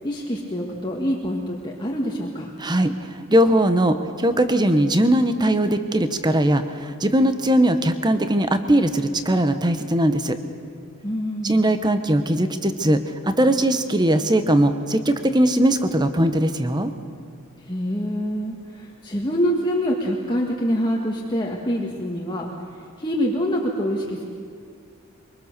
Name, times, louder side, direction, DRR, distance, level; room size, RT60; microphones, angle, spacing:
voice 1, 0.0-2.5 11.0-11.6 17.7-22.4 23.0-24.2, equal, 20° left, -2 dB, 1.7 m, -25 dB
voice 2, 2.6-10.4 11.4-16.9, right 1 dB, 20° right, 9 dB, 1.0 m, -20 dB
23.5 x 23.5 x 6.7 m, 2.2 s
head